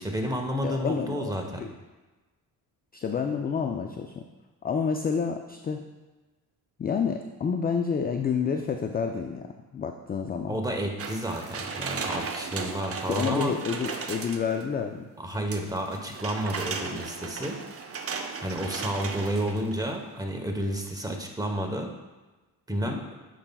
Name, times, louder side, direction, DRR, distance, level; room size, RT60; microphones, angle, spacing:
voice 1, 0.0-1.6 10.5-13.6 15.2-17.6 18.4-21.9 22.7-23.0, right 1 dB, 10° right, 2 dB, 1.0 m, -31 dB
voice 2, 0.6-1.7 2.9-4.3 4.6-5.8 6.8-9.5 9.7-10.6 13.1-15.1 22.8-23.0, left 6 dB, 25° left, 5 dB, 0.3 m, -29 dB
sound 1, 11.0-14.7 15.5-19.9 20.3-20.4, right 5 dB, 35° right, 0.6 m, -36 dB
8.6 x 5.4 x 2.3 m, 1.2 s
cardioid pair, 75°, 41 cm